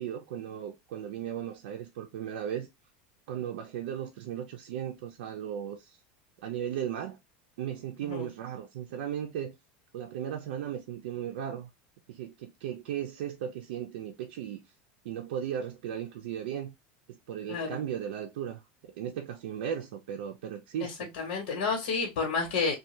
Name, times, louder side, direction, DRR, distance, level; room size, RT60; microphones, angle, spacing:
voice 1, 0.0-2.7 3.3-6.0 6.4-7.2 7.6-9.6 9.9-11.7 12.1-14.6 15.0-16.7 17.1-21.1, right 9 dB, 80° right, 0.5 m, -36 dB
voice 2, 17.5-17.8 20.8-20.9 21.2-22.7, left 4 dB, 90° left, 1.1 m, -30 dB
2.7 x 2.3 x 3.1 m
supercardioid pair, 165°, 5 cm